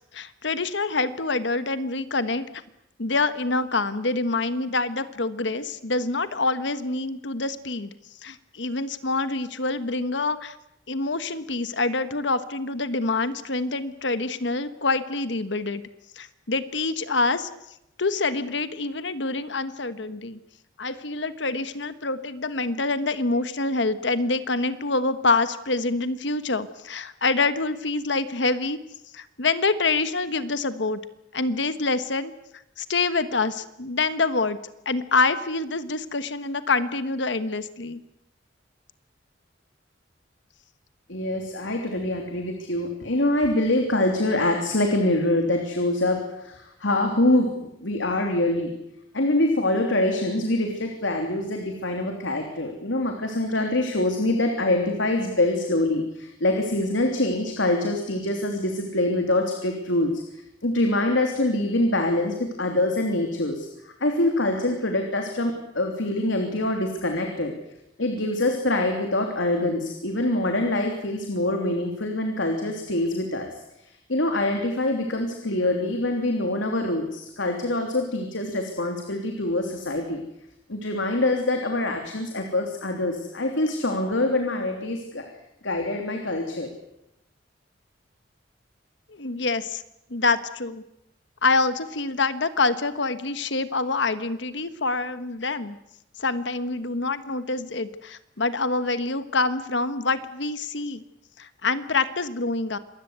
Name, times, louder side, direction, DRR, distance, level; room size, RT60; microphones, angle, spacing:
voice 1, 0.1-2.4 3.0-7.9 8.2-10.6 10.9-15.8 16.2-17.5 18.0-20.4 20.8-28.8 29.1-31.0 31.3-32.3 32.8-34.6 34.8-38.0 89.1-89.8 90.1-90.8 91.4-95.8 96.2-101.0 101.4-102.8, left 3 dB, 70° left, 12 dB, 1.3 m, -26 dB
voice 2, 41.1-48.7 49.1-60.2 60.6-67.5 68.0-73.5 73.8-80.2 80.7-85.2 85.6-86.7, left 1 dB, 90° left, 3 dB, 3.2 m, -25 dB
26.5 x 20.5 x 8.2 m, 0.82 s
head